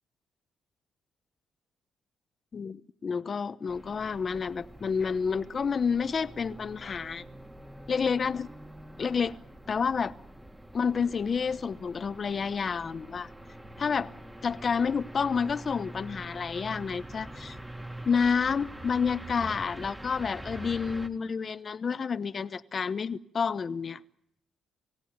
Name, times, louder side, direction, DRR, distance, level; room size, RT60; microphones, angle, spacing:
voice 1, 2.5-7.2 7.9-8.5 9.0-9.4 9.7-10.1 10.7-13.3 13.8-14.1 14.4-17.6 18.1-24.0, left 6 dB, 45° left, 1.0 m, -29 dB
sound 1, 3.7-21.1, right 1 dB, 10° right, 2.2 m, -45 dB
29.0 x 17.0 x 9.4 m
cardioid pair, 90°, 0 cm